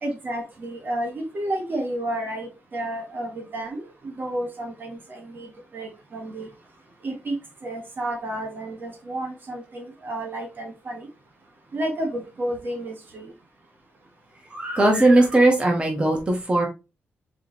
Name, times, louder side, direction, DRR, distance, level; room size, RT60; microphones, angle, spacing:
voice 1, 0.0-6.5 7.0-7.4 7.6-11.1 11.7-13.3, right 1 dB, 45° right, 1.4 m, -31 dB
voice 2, 14.5-16.7, right 2 dB, 25° right, 1.3 m, -19 dB
4.7 x 3.2 x 3.0 m
cardioid pair, 95°, 5 cm